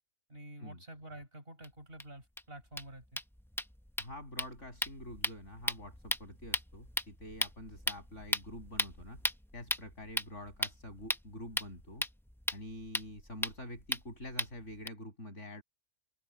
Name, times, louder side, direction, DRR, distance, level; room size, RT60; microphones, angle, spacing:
voice 1, 0.3-3.2, right 1 dB, 40° right, 7.2 m, -49 dB
sound 1, 1.6-1.7 2.0-2.1 2.4-2.5 2.7-14.9, equal, 5° left, 0.3 m, -38 dB
voice 2, 4.0-9.2 9.5-12.0 12.5-15.6, left 1 dB, 55° left, 7.6 m, -46 dB
open air
omnidirectional pair, 1.5 m